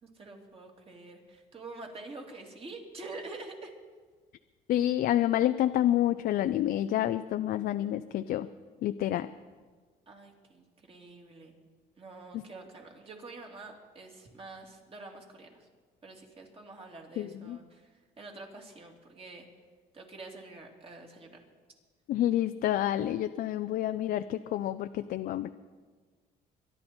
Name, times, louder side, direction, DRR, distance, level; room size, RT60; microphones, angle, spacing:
voice 1, 0.0-3.7 10.1-11.5 12.0-15.7 16.0-19.4 19.9-21.4, right 3 dB, 35° right, 1 dB, 2.8 m, -47 dB
voice 2, 4.7-8.5 8.8-9.3 17.2-17.6 22.1-25.5, left 12 dB, 60° left, 10 dB, 0.5 m, -28 dB
24.0 x 11.0 x 4.4 m, 1.4 s
cardioid pair, 110°, 17 cm